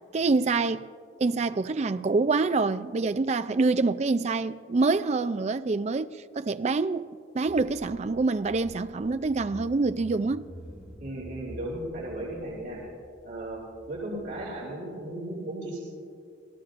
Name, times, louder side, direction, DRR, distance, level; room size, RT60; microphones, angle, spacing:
voice 1, 0.1-0.9 1.2-10.5, right 3 dB, 35° right, 0.3 m, -26 dB
Car / Engine, 7.5-14.5, equal, 5° right, 1.0 m, -48 dB
voice 2, 11.0-12.8 13.2-15.8, right 1 dB, 70° right, 3.0 m, -36 dB
27.0 x 17.5 x 2.5 m
head